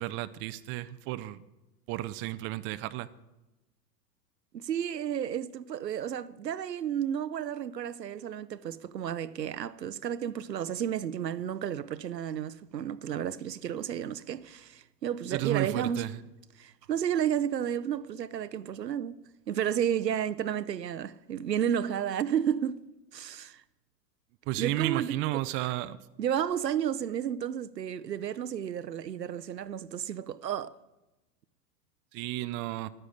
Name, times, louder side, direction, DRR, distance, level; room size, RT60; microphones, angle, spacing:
voice 1, 0.0-1.4 1.9-3.1 15.3-16.1 24.5-26.0 32.1-32.9, right 16 dB, 25° right, 0.5 m, -32 dB
voice 2, 4.5-16.1 16.6-22.8 23.1-23.6 24.6-25.4 26.2-30.7, right 9 dB, 90° right, 0.7 m, -32 dB
12.5 x 9.8 x 6.4 m
figure-of-eight pair, 95°, 48 cm